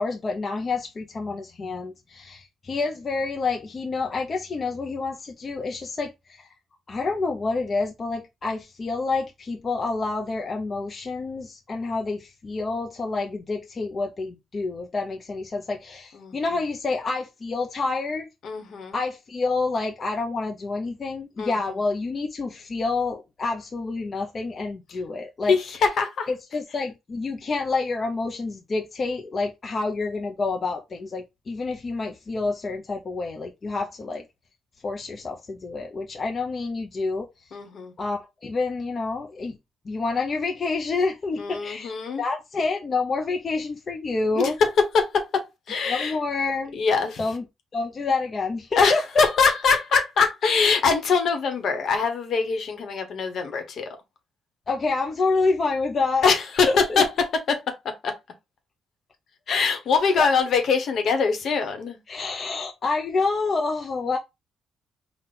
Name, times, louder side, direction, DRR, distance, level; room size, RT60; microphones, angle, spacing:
voice 1, 0.0-6.5 6.9-18.3 18.9-25.5 26.3-34.2 34.8-37.3 38.0-39.6 39.9-44.6 45.9-46.8 47.2-47.4 47.7-49.0 54.7-56.3 56.7-57.0 60.2-60.3 62.1-64.2, left 3 dB, 40° left, 0.7 m, -28 dB
voice 2, 18.4-19.0 21.4-21.6 25.5-26.3 37.5-37.9 41.4-42.2 44.3-44.7 44.9-45.4 45.7-46.2 46.7-47.2 48.8-53.9 56.2-57.6 58.0-58.1 59.5-62.0, left 5 dB, 65° left, 1.2 m, -23 dB
4.2 x 2.4 x 3.7 m
cardioid pair, 90°, 0 cm